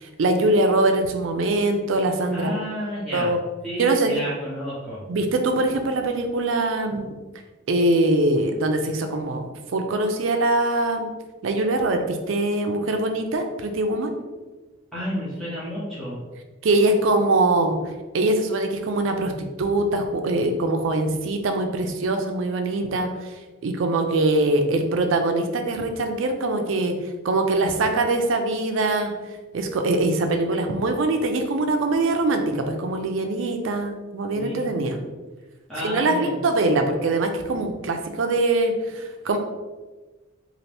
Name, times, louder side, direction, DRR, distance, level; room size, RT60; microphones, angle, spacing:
voice 1, 0.0-2.5 3.1-3.4 3.8-4.1 5.1-7.1 7.7-11.1 11.4-14.1 16.6-17.8 18.1-23.3 23.6-26.9 27.2-29.1 29.5-35.0 35.8-39.4, right 2 dB, 65° right, 5 dB, 0.4 m, -23 dB
voice 2, 2.3-3.3 3.6-5.0 14.9-16.2 34.3-34.7 35.7-36.8, equal, ahead, -11 dB, 0.7 m, -31 dB
2.7 x 2.5 x 3.2 m, 1.3 s
head